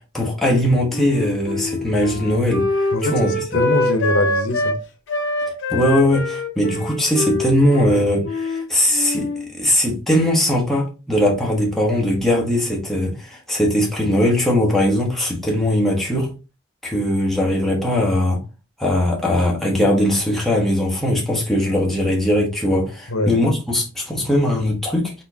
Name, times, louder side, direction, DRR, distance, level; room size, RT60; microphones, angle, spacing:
voice 1, 0.1-3.3 5.7-16.3 16.8-18.4 18.8-25.1, left 1 dB, ahead, 1.2 m, -20 dB
Wind instrument woodwind instrument, 0.9-4.8 5.1-8.7 8.9-9.5, left 2 dB, 60° left, 0.8 m, -24 dB
voice 2, 2.9-4.8 23.1-23.4, left 2 dB, 90° left, 0.9 m, -22 dB
4.2 x 3.6 x 2.8 m
head